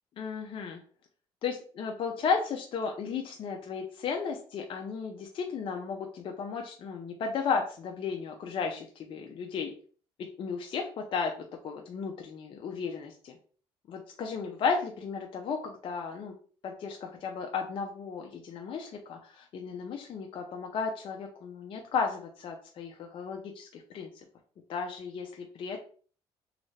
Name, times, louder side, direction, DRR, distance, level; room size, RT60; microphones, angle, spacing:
voice 1, 0.2-0.8 1.4-9.7 10.2-11.3 11.6-13.3 13.9-16.3 16.6-24.2 24.7-25.8, left 5 dB, 55° left, 3 dB, 0.5 m, -34 dB
3.1 x 2.5 x 3.2 m, 0.43 s
cardioid pair, 85°, 11 cm